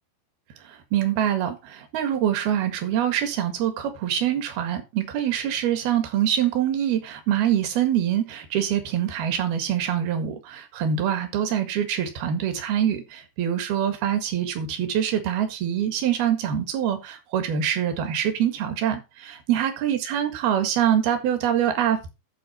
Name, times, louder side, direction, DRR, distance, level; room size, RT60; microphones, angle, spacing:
voice 1, 0.6-22.1, right 10 dB, 75° right, 3.6 m, -25 dB
11.5 x 4.6 x 5.7 m
omnidirectional pair, 4.6 m